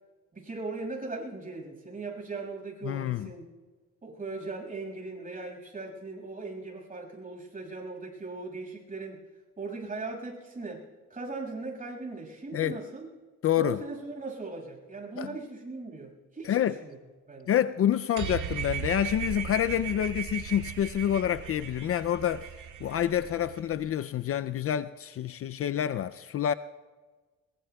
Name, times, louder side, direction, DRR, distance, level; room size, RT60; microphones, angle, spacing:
voice 1, 0.3-3.5 4.0-9.2 9.6-10.8 11.1-13.1 13.6-17.0 17.3-17.5, right 3 dB, 25° right, 6.0 m, -39 dB
voice 2, 2.8-3.3 12.5-12.8 13.4-13.8 15.2-15.3 16.4-16.8 17.5-22.5 22.8-26.5, left 10 dB, 50° left, 0.4 m, -28 dB
sound 1, 18.2-23.8, right 8 dB, 80° right, 1.7 m, -37 dB
23.0 x 22.0 x 2.3 m
cardioid pair, 90°, 30 cm